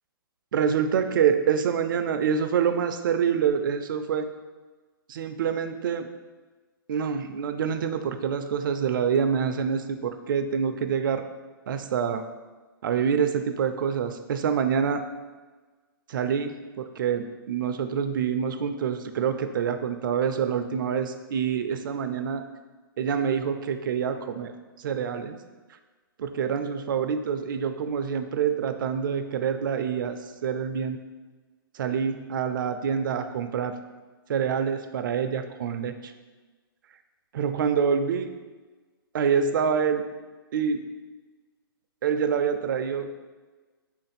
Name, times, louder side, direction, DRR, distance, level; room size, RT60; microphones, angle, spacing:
voice 1, 0.5-4.3 5.1-6.1 6.9-11.2 11.7-12.2 12.8-15.0 16.1-22.4 23.0-24.5 24.8-25.4 26.2-31.0 31.7-33.8 34.3-36.1 37.3-38.3 39.1-40.0 40.5-40.9 42.0-43.2, right 7 dB, 60° right, 8 dB, 0.4 m, -26 dB
3.5 x 2.5 x 4.0 m, 1.3 s
hypercardioid pair, 145°, 12 cm